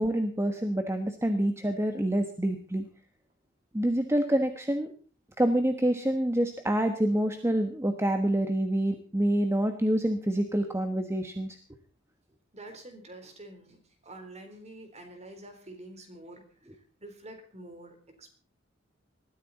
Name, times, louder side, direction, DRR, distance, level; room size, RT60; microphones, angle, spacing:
voice 1, 0.0-2.8 3.7-4.9 5.4-11.6, right 1 dB, 15° right, 6 dB, 1.3 m, -27 dB
voice 2, 12.5-18.3, right 1 dB, 35° right, 6 dB, 3.8 m, -47 dB
20.5 x 14.0 x 4.1 m, 0.40 s
head